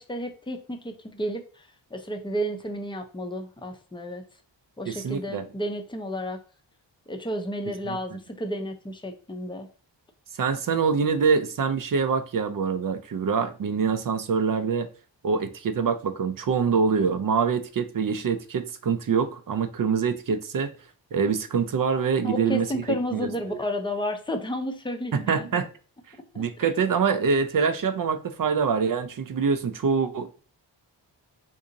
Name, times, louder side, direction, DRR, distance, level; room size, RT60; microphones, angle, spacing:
voice 1, 0.0-4.2 4.8-6.4 7.1-9.7 22.2-25.5 26.3-26.7, equal, 10° left, 0.6 m, -32 dB
voice 2, 4.9-5.4 7.9-8.0 10.4-14.9 15.2-20.7 21.1-22.7 23.1-23.6 25.1-25.7 26.4-30.3, right 5 dB, 45° right, 0.5 m, -25 dB
2.7 x 2.5 x 3.8 m
cardioid pair, 70°, 46 cm